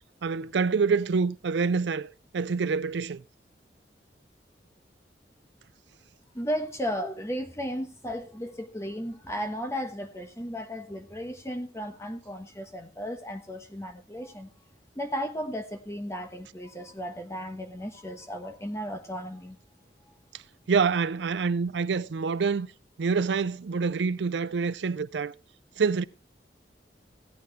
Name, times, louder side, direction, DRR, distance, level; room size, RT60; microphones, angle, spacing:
voice 1, 0.2-3.2 20.7-22.7 23.0-25.3 25.8-26.0, right 5 dB, 80° right, 0.5 m, -26 dB
voice 2, 6.3-14.5 14.9-19.6, equal, 15° left, 1.2 m, -35 dB
16.5 x 9.3 x 3.2 m
head